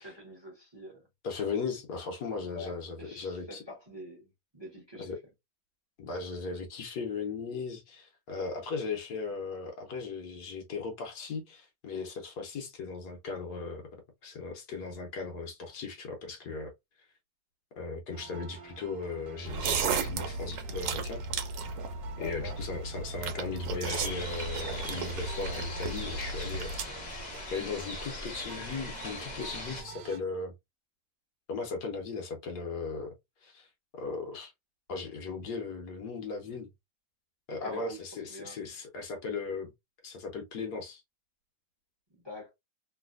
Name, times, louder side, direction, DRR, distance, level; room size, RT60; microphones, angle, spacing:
voice 1, 0.0-1.1 2.5-5.1 22.1-22.7 37.5-38.7 42.2-42.5, left 1 dB, 15° right, 1.1 m, -46 dB
voice 2, 1.2-3.6 5.0-5.2 6.0-13.8 14.2-16.7 17.8-21.2 22.2-27.1 27.5-30.5 31.5-33.1 33.4-33.7 34.0-34.5 34.9-36.7 37.5-39.7 40.0-41.0, left 4 dB, 65° left, 1.2 m, -37 dB
sound 1, 18.1-30.2, right 5 dB, 65° right, 1.2 m, -49 dB
sound 2, 19.5-26.8, right 4 dB, 80° right, 1.3 m, -34 dB
sound 3, 23.8-29.8, left 2 dB, 30° left, 1.0 m, -40 dB
3.2 x 2.6 x 2.4 m
omnidirectional pair, 1.9 m